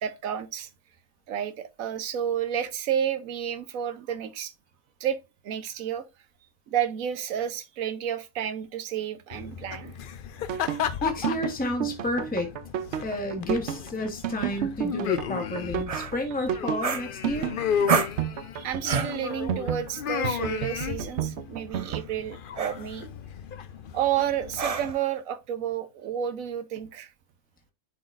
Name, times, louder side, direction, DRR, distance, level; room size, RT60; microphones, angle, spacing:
voice 1, 0.0-0.7 1.3-4.5 5.0-5.2 5.4-6.1 6.7-10.0 18.5-23.1 23.9-27.1, right 9 dB, 80° right, 1.2 m, -30 dB
sound 1, 9.3-24.9, left 8 dB, 55° left, 0.6 m, -34 dB
sound 2, 10.5-22.0, right 10 dB, 65° right, 0.8 m, -31 dB
voice 2, 11.0-12.5 13.0-17.5, left 1 dB, 5° left, 1.2 m, -31 dB
sound 3, 15.9-16.1 16.8-17.5 17.9-18.2 18.8-19.2 20.7-20.9 21.7-22.0 22.6-22.8 24.6-25.1, right 6 dB, 45° right, 0.5 m, -28 dB
10.0 x 4.0 x 2.5 m
omnidirectional pair, 1.4 m